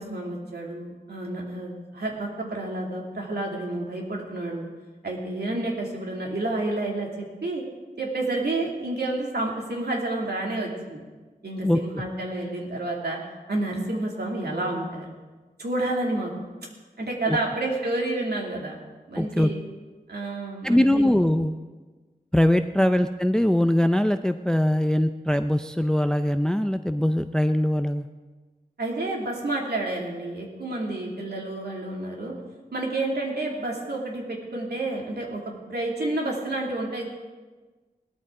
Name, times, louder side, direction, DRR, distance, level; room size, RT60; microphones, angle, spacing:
voice 1, 0.0-4.7 5.0-7.6 8.0-11.0 11.4-13.2 13.5-15.1 15.6-16.3 17.0-18.8 19.1-19.6 20.1-21.0 28.8-32.3 32.7-37.0, right 2 dB, 90° right, -2 dB, 2.6 m, -30 dB
voice 2, 11.6-12.0 17.3-17.4 19.2-19.5 20.6-21.5 22.3-28.1, left 1 dB, 5° left, 9 dB, 0.4 m, -22 dB
17.5 x 13.0 x 3.8 m, 1.3 s
wide cardioid pair, 75°, 16 cm